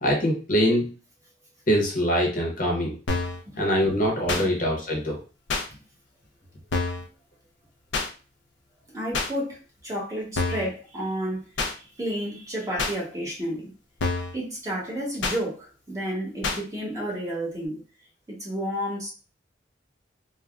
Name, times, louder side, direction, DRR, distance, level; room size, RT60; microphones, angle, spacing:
voice 1, 0.0-0.9 1.7-3.0 3.6-5.2, equal, 50° left, 0 dB, 0.8 m, -23 dB
sound 1, 3.1-3.4 4.3-4.5 5.5-5.7 6.7-7.1 7.9-8.1 9.1-9.3 10.4-10.7 11.6-11.7 12.8-13.0 14.0-14.4 15.2-15.4 16.4-16.6, left 3 dB, 85° left, 0.5 m, -27 dB
voice 2, 8.9-13.7 14.3-17.8 18.3-19.1, equal, 20° right, -4 dB, 0.9 m, -31 dB
3.3 x 2.1 x 2.3 m, 0.35 s
head